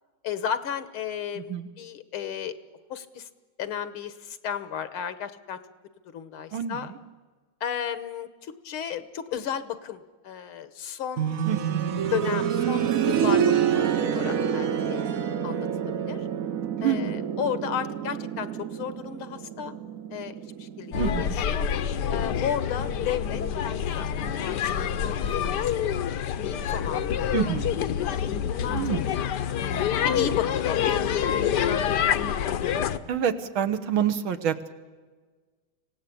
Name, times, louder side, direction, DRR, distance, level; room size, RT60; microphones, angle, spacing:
voice 1, 0.2-2.5 2.9-3.3 3.6-5.6 6.1-6.9 7.6-11.5 12.1-15.0 15.4-16.3 16.8-19.8 20.1-21.7 22.1-25.9 26.7-27.2 27.9-29.4 30.0-32.9, left 9 dB, 80° left, 12 dB, 2.0 m, -34 dB
voice 2, 6.5-7.0 11.5-11.9 16.8-17.3 21.0-21.4 27.3-27.8 28.7-29.0 33.1-34.7, right 8 dB, 70° right, 10 dB, 1.9 m, -27 dB
sound 1, 11.2-21.9 23.3-23.4, right 8 dB, 50° right, 1.1 m, -27 dB
sound 2, 20.9-33.0, left 8 dB, 60° left, 1.3 m, -27 dB
25.5 x 17.5 x 8.5 m, 1.4 s
omnidirectional pair, 2.3 m